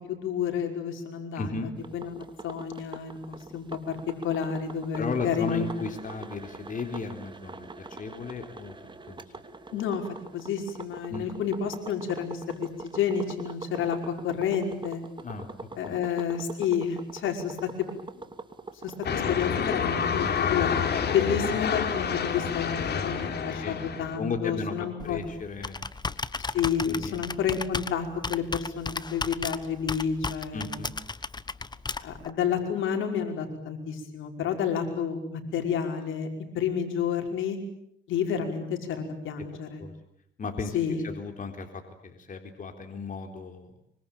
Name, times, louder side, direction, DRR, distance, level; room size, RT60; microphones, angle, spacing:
voice 1, 0.1-1.5 1.9-4.0 4.2-5.7 9.7-10.0 10.3-15.0 15.8-17.7 18.8-20.7 21.1-25.2 26.4-30.8 32.0-36.3 36.5-37.6 38.1-39.8 40.7-41.0, left 7 dB, 80° left, 4 dB, 5.3 m, -30 dB
voice 2, 1.3-1.7 5.0-8.8 9.0-9.3 11.1-11.3 15.2-16.0 23.6-23.8 24.2-25.9 26.9-27.2 30.5-30.9 39.8-39.9 40.4-43.7, left 4 dB, 40° left, 5 dB, 3.8 m, -35 dB
sound 1, 1.8-20.1, right 3 dB, 25° right, 2.9 m, -43 dB
sound 2, 19.0-24.2, left 7 dB, 55° left, 3.8 m, -28 dB
Computer keyboard, 25.0-32.3, left 3 dB, 20° left, 1.2 m, -35 dB
25.0 x 25.0 x 8.9 m, 0.72 s
cardioid pair, 90°, 20 cm